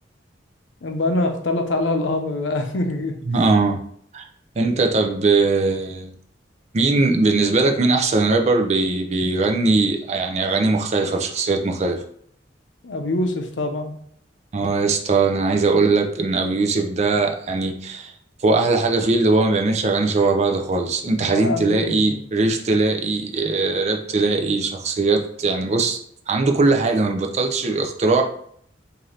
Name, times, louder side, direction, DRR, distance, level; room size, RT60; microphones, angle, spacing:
voice 1, 0.8-3.2 12.8-13.9 21.1-22.1, left 2 dB, 80° left, 4 dB, 0.6 m, -24 dB
voice 2, 3.3-3.8 4.1-4.3 4.6-6.1 6.7-12.0 14.5-18.1 18.4-26.0 26.3-28.2, right 3 dB, 35° right, 4 dB, 0.4 m, -20 dB
3.9 x 2.6 x 3.1 m, 0.63 s
head